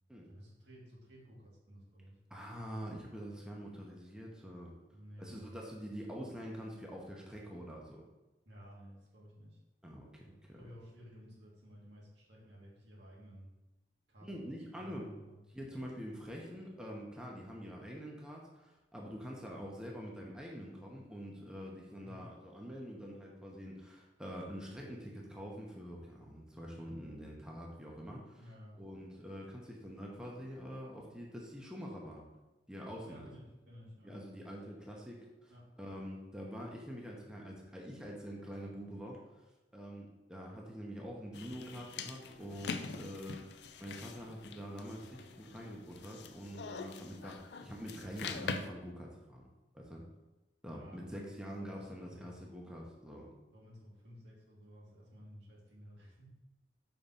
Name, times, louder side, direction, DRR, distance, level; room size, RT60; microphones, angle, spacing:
voice 1, 0.3-2.2 4.9-5.6 8.5-9.6 10.6-13.5 14.1-15.4 15.7-15.8 22.0-22.2 28.4-29.0 33.0-34.4 35.5-35.6 42.3-42.9 50.7-51.1 51.5-52.3 53.5-56.3, equal, 75° right, -4 dB, 2.1 m, -54 dB
voice 2, 2.3-4.7 5.2-8.0 9.8-10.6 14.2-15.1 15.5-28.4 28.7-32.2 32.7-33.3 34.0-35.5 35.8-39.2 39.7-49.4 49.7-50.0 50.6-53.3, equal, 5° right, -2 dB, 0.9 m, -45 dB
sound 1, 41.3-48.7, left 5 dB, 70° left, 0.5 m, -44 dB
5.3 x 3.8 x 5.6 m, 1.1 s
head